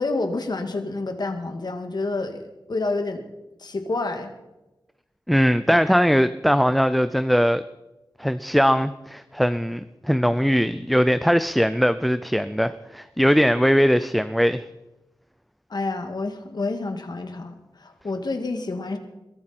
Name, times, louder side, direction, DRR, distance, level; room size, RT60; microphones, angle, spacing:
voice 1, 0.0-3.2 3.6-4.3 15.7-19.0, left 3 dB, 60° left, 6 dB, 2.0 m, -28 dB
voice 2, 5.3-7.6 8.2-14.6, equal, ahead, 12 dB, 0.5 m, -20 dB
22.0 x 13.0 x 4.4 m, 0.99 s
wide cardioid pair, 70°, 8 cm